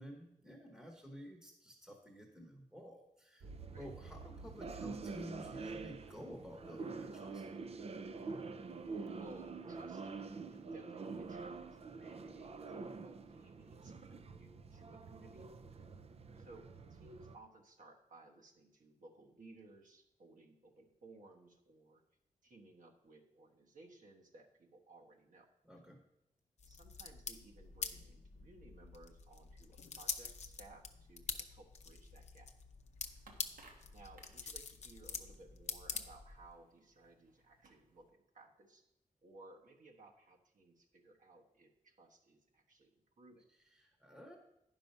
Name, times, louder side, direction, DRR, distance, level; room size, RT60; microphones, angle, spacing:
voice 1, 0.0-7.5 25.6-26.0 43.5-44.4, equal, 10° right, 2 dB, 1.0 m, -52 dB
sound 1, 3.4-17.3, right 4 dB, 45° right, 0.5 m, -46 dB
voice 2, 9.1-15.5 15.8-15.9 16.3-22.0 22.4-25.5 26.7-32.5 33.9-38.8 39.2-43.4, right 2 dB, 65° right, 1 dB, 1.3 m, -60 dB
sound 2, 26.6-36.5, left 5 dB, 50° left, 0.6 m, -46 dB
sound 3, 33.0-38.1, right 2 dB, 90° right, 1.2 m, -65 dB
10.5 x 5.5 x 5.4 m, 0.83 s
wide cardioid pair, 165°, 14 cm